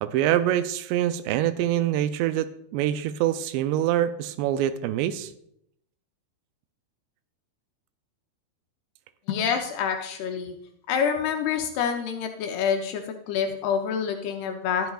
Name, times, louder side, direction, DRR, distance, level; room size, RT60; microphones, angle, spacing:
voice 1, 0.0-5.3, right 12 dB, 85° right, 12 dB, 2.7 m, -25 dB
voice 2, 9.3-10.6 10.9-14.9, left 7 dB, 80° left, 4 dB, 2.5 m, -27 dB
12.5 x 10.5 x 2.4 m, 0.72 s
omnidirectional pair, 5.0 m